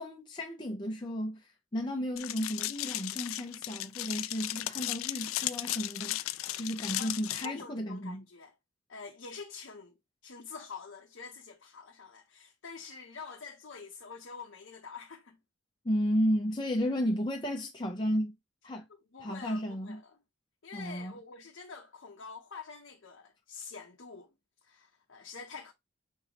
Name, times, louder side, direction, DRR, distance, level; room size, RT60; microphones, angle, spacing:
voice 1, 0.0-6.2 6.5-8.2 15.8-18.3 18.6-18.8 19.2-20.0 20.7-21.1, equal, 20° left, 0.6 m, -33 dB
sound 1, 2.2-7.5, left 15 dB, 85° left, 0.3 m, -35 dB
voice 2, 7.4-8.5 8.9-9.9 10.2-15.4 19.1-20.1 20.6-24.3 24.6-25.7, left 5 dB, 70° left, 0.7 m, -46 dB
5.4 x 2.6 x 2.9 m
head